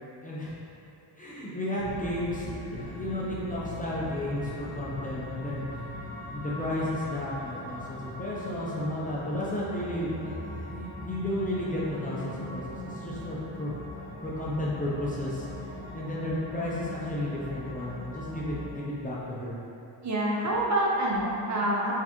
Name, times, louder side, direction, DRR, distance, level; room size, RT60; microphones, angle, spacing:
voice 1, 0.2-0.5 1.2-5.6 6.3-13.7 14.2-15.5 15.9-19.6, left 1 dB, 20° left, -7 dB, 0.4 m, -33 dB
sound 1, 1.8-18.6, equal, 15° right, 1.2 m, -40 dB
voice 2, 20.0-21.9, right 1 dB, 40° right, -3 dB, 0.5 m, -27 dB
4.6 x 3.4 x 2.9 m, 2.8 s
wide cardioid pair, 180°, 45 cm